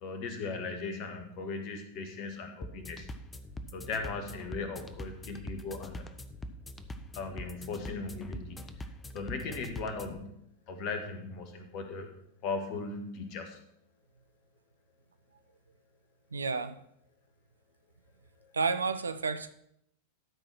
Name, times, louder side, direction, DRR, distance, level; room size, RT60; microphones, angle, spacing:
voice 1, 0.0-3.1 3.7-6.1 7.1-8.6 9.1-10.3 10.7-12.1 12.4-13.6, left 4 dB, 40° left, 6 dB, 1.6 m, -38 dB
sound 1, 2.6-10.2, left 1 dB, 15° left, 0.7 m, -44 dB
voice 2, 16.3-16.7 18.5-19.5, right 4 dB, 75° right, 11 dB, 0.6 m, -31 dB
12.5 x 4.6 x 6.1 m, 0.74 s
figure-of-eight pair, 90°, 0 cm